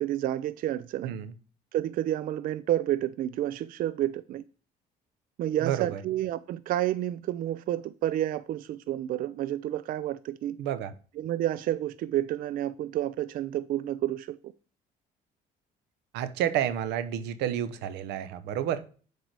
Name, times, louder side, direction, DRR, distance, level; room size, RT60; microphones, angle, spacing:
voice 1, 0.0-1.2 1.7-4.4 5.4-10.6 11.2-14.4, right 12 dB, 55° right, 0.4 m, -30 dB
voice 2, 1.0-1.3 5.6-6.0 10.6-10.9 16.1-18.8, right 10 dB, 90° right, 0.8 m, -30 dB
6.6 x 4.7 x 4.6 m
cardioid pair, 110°, 17 cm